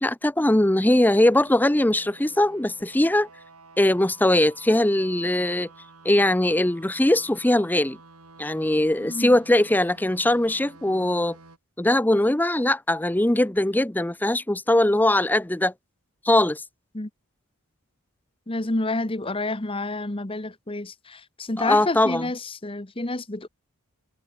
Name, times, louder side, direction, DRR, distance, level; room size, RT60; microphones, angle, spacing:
voice 1, 0.0-3.3 3.8-5.7 6.0-8.0 8.4-11.4 11.8-15.7 16.2-16.6 21.6-22.3, left 1 dB, 10° left, 0.6 m, -21 dB
sound 1, 0.8-11.6, right 3 dB, 80° right, 5.4 m, -50 dB
voice 2, 9.0-9.4 16.9-17.1 18.5-23.5, left 2 dB, 25° left, 1.2 m, -29 dB
head